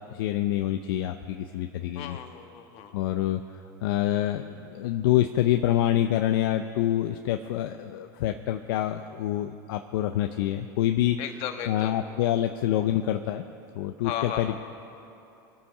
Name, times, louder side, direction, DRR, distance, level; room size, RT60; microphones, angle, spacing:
voice 1, 0.1-2.2 2.9-3.4 3.8-11.2 11.7-13.4 13.8-14.6, left 12 dB, 75° left, 7 dB, 0.6 m, -26 dB
voice 2, 1.9-2.9 11.2-12.0 14.0-14.6, left 9 dB, 60° left, 5 dB, 1.6 m, -35 dB
24.0 x 8.7 x 4.9 m, 2.8 s
hypercardioid pair, 105°, 12 cm